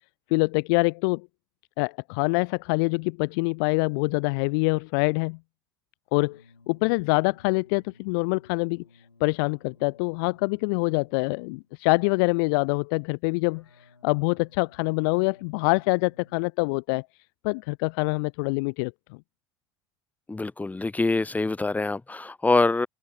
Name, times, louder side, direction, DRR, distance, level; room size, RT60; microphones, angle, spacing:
voice 1, 0.3-1.3 1.8-5.4 6.1-6.4 6.7-8.8 9.2-13.6 14.0-17.1 17.4-18.9, left 32 dB, 55° left, 0.5 m, -25 dB
sound 1, 6.2-11.8 13.6-16.3, left 3 dB, 85° left, 5.5 m, -58 dB
voice 2, 20.3-22.9, left 3 dB, 10° left, 1.5 m, -25 dB
figure-of-eight pair, 65°, 14 cm